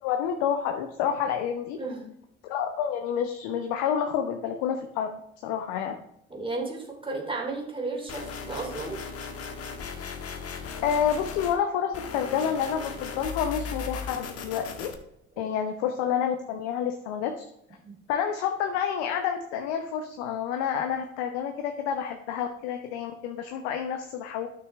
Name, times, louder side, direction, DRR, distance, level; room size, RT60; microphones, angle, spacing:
voice 1, 0.0-1.8 2.4-5.9 10.8-14.9 15.4-17.3 18.1-24.5, left 8 dB, 65° left, 5 dB, 1.0 m, -29 dB
voice 2, 1.8-2.1 6.3-9.0 17.8-17.9, right 3 dB, 15° right, 0 dB, 2.8 m, -33 dB
sound 1, 8.1-11.6 11.9-14.9, left 5 dB, 45° left, 1.4 m, -37 dB
12.5 x 6.2 x 3.2 m, 0.77 s
figure-of-eight pair, 55°, 33 cm